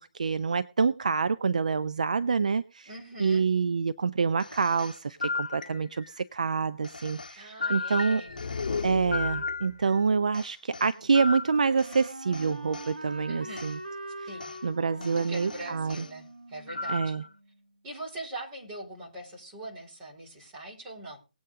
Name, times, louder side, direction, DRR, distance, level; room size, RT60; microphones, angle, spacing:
voice 1, 0.1-2.9 3.2-8.2 8.8-13.8 14.6-16.0 16.9-17.2, right 5 dB, 55° right, 13 dB, 0.5 m, -27 dB
voice 2, 2.9-3.5 7.4-8.4 13.3-13.7 14.3-14.6 15.0-17.1 17.8-21.2, right 1 dB, 20° right, -3 dB, 5.0 m, -42 dB
sound 1, 4.4-6.2 6.8-10.0 10.3-12.9 13.6-13.8 14.4-14.6 15.0-16.1 16.7-17.3, left 3 dB, 65° left, 0.9 m, -36 dB
sound 2, 8.3-9.8, left 5 dB, 40° left, 1.6 m, -34 dB
Wind instrument woodwind instrument, 10.7-17.6, right 1 dB, 85° right, 1.5 m, -43 dB
19.0 x 8.7 x 3.7 m, 0.30 s
figure-of-eight pair, 150°, 5 cm